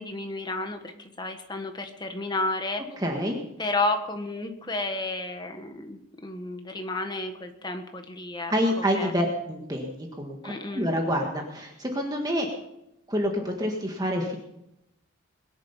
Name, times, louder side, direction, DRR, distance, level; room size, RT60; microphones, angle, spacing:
voice 1, 0.0-2.8 3.6-9.1 10.4-10.9, left 2 dB, 20° left, 5 dB, 1.5 m, -32 dB
voice 2, 3.0-3.4 8.5-12.5 13.1-14.4, equal, 20° right, 2 dB, 1.7 m, -27 dB
21.5 x 10.5 x 5.7 m, 0.85 s
head